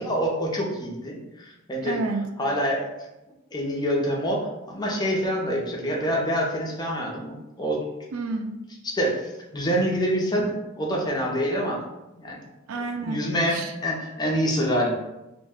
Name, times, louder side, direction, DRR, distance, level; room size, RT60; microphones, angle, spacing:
voice 1, 0.0-2.0 2.4-2.8 3.5-7.8 8.8-9.2 9.5-11.8 12.2-12.4 13.1-15.0, equal, 20° left, -2 dB, 0.5 m, -26 dB
voice 2, 1.8-2.3 8.1-8.6 12.7-13.7, right 3 dB, 70° right, 5 dB, 0.3 m, -30 dB
2.5 x 2.1 x 3.5 m, 0.95 s
head